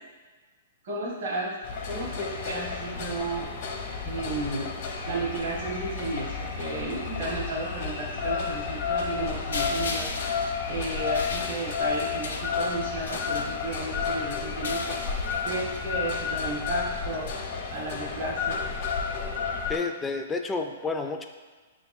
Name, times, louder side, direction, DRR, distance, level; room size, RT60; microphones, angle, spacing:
voice 1, 0.8-1.5 1.8-3.5 4.0-17.3 17.7-18.6 19.0-19.1, right 2 dB, 65° right, -5 dB, 0.9 m, -33 dB
sound 1, 1.6-19.8, left 5 dB, 55° left, 0.7 m, -31 dB
sound 2, 4.9-10.1, right 3 dB, 80° right, 0.4 m, -45 dB
sound 3, 9.5-14.0 14.5-15.8, left 3 dB, 85° left, 0.5 m, -37 dB
voice 2, 19.7-21.2, left 4 dB, 10° left, 4 dB, 0.3 m, -30 dB
6.6 x 2.6 x 2.3 m, 1.3 s
hypercardioid pair, 135°, 0 cm